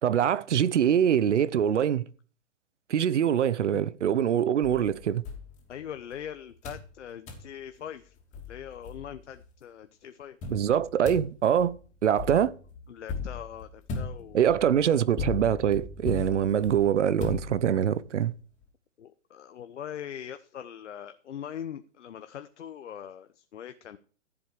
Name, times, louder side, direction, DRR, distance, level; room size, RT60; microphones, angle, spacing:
voice 1, 0.0-2.0 2.9-5.2 10.5-11.7 12.0-12.5 14.3-18.3, right 9 dB, 60° right, 0.9 m, -24 dB
sound 1, 4.6-6.2 6.6-6.9 7.3-7.5 8.0-8.1 8.3-9.4 10.4-18.0, left 4 dB, 20° left, 2.9 m, -38 dB
voice 2, 5.7-8.2 8.5-10.4 12.9-14.5 19.0-24.0, left 9 dB, 60° left, 1.0 m, -41 dB
14.0 x 7.9 x 4.8 m
hypercardioid pair, 140°, 39 cm